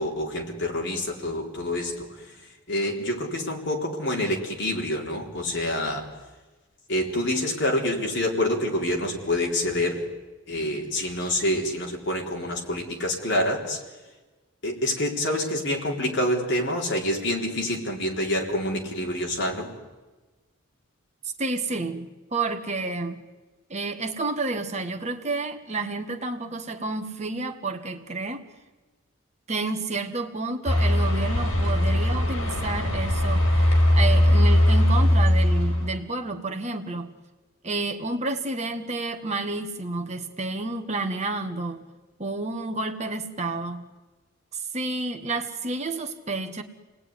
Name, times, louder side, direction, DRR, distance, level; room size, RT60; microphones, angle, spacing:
voice 1, 0.0-2.3 2.7-6.1 6.9-10.0 10.5-13.8 14.6-19.7, left 1 dB, 55° left, 0 dB, 4.2 m, -27 dB
voice 2, 21.2-23.3 23.7-28.4 29.5-37.1 37.6-41.8 42.2-43.9 44.5-46.6, right 3 dB, 30° right, 5 dB, 1.5 m, -30 dB
sound 1, 30.7-36.0, left 1 dB, 85° left, 4.8 m, -20 dB
29.0 x 19.5 x 9.9 m, 1.2 s
head